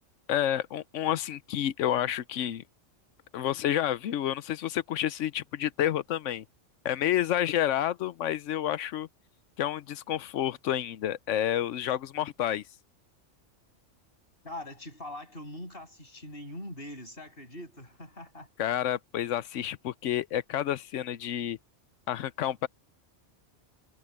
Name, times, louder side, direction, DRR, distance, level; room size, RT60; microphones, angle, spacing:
voice 1, 0.3-2.6 3.3-6.4 6.8-9.1 9.6-12.6 18.6-21.6 22.1-22.7, left 11 dB, 80° left, 1.0 m, -29 dB
voice 2, 14.4-18.5, left 1 dB, 50° left, 8.2 m, -42 dB
omnidirectional pair, 1.3 m